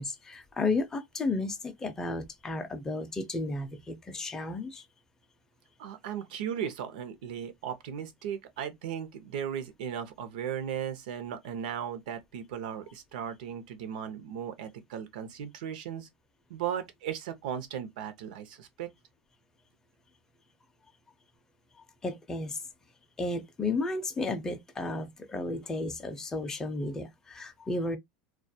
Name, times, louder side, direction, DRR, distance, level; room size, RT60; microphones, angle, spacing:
voice 1, 0.0-4.8 22.0-22.6 23.2-28.0, left 3 dB, 10° left, 0.4 m, -33 dB
voice 2, 5.8-16.1 16.5-18.9, right 9 dB, 90° right, 0.6 m, -36 dB
2.3 x 2.2 x 2.6 m
supercardioid pair, 155°, 4 cm